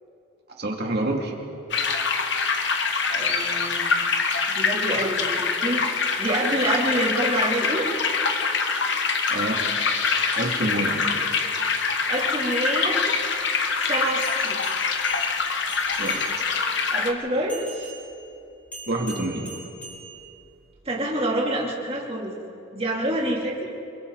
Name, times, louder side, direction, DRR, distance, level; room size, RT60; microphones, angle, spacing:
voice 1, 0.6-1.3 9.3-9.6 10.4-11.2 16.0-16.2 18.9-19.5, right 1 dB, 50° right, 0 dB, 2.7 m, -27 dB
sound 1, 1.7-17.1, left 5 dB, 55° left, 1.2 m, -25 dB
voice 2, 3.1-4.0 4.5-5.9 6.2-7.9 12.1-13.0 13.8-14.6 16.9-17.9 20.8-22.3 22.7-23.7, right 1 dB, 30° right, -3 dB, 3.2 m, -27 dB
sound 2, 13.0-16.7 17.5-20.7, right 2 dB, 5° left, 4.4 m, -42 dB
28.5 x 22.5 x 4.1 m, 2.7 s
head